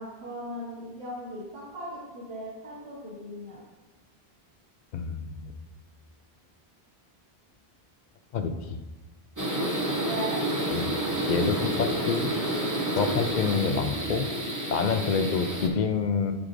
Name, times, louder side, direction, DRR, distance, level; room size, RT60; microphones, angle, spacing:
voice 1, 0.0-3.6 10.0-10.4, right 1 dB, 70° right, -12 dB, 2.2 m, -37 dB
voice 2, 4.9-5.5 8.3-8.8 10.7-10.8 11.3-12.3 13.0-14.3 14.7-16.3, left 5 dB, 55° left, 7 dB, 0.5 m, -27 dB
sound 1, 9.4-15.7, right 1 dB, 20° right, 0.7 m, -29 dB
9.6 x 4.8 x 2.5 m, 1.2 s
omnidirectional pair, 1.1 m